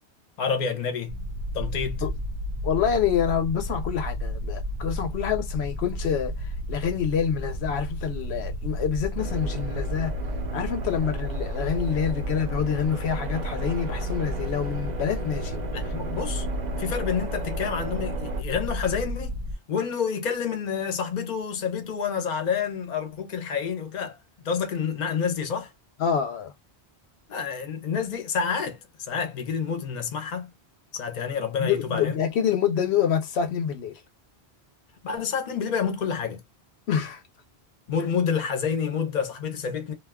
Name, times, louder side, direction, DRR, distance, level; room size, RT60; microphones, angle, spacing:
voice 1, 0.4-1.1 1.5-2.0 15.7-16.5 16.8-19.4 19.7-24.2 24.4-25.7 27.3-30.5 30.9-32.2 35.0-36.4 37.9-39.9, left 6 dB, 50° left, 0.7 m, -28 dB
sound 1, 1.1-19.5, equal, 75° right, 0.8 m, -32 dB
voice 2, 2.6-10.1 10.5-15.9 26.0-26.5 31.6-34.0 36.9-37.2 38.0-38.1, left 8 dB, 80° left, 0.8 m, -27 dB
sound 2, 9.2-18.4, right 5 dB, 55° right, 0.6 m, -37 dB
2.3 x 2.2 x 3.4 m
omnidirectional pair, 1.1 m